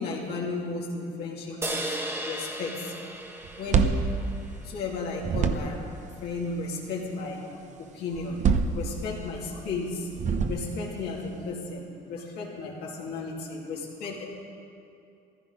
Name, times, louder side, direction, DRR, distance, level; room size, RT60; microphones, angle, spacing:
voice 1, 0.0-2.9 3.6-4.0 4.6-5.9 6.2-7.4 7.8-8.4 8.7-10.1 10.4-14.2, left 3 dB, 75° left, -3 dB, 2.5 m, -34 dB
sound 1, 1.6-5.1, right 1 dB, 15° right, 1.2 m, -36 dB
sound 2, 3.4-4.9 5.2-6.0 8.1-9.4 10.1-10.9, right 5 dB, 45° right, 0.9 m, -26 dB
15.5 x 12.5 x 5.2 m, 2.6 s
cardioid pair, 110°, 17 cm